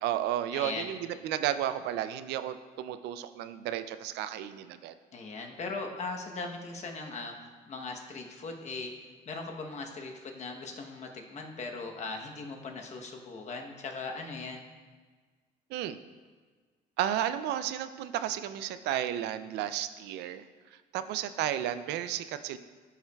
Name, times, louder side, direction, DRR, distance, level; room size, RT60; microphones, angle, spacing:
voice 1, 0.0-4.9 15.7-16.0 17.0-20.4 20.9-22.6, right 11 dB, 80° right, 12 dB, 0.4 m, -33 dB
voice 2, 0.5-0.9 5.1-8.9 9.3-14.6, left 3 dB, 40° left, 2 dB, 1.0 m, -39 dB
12.0 x 5.6 x 2.3 m, 1.5 s
cardioid pair, 110°, 17 cm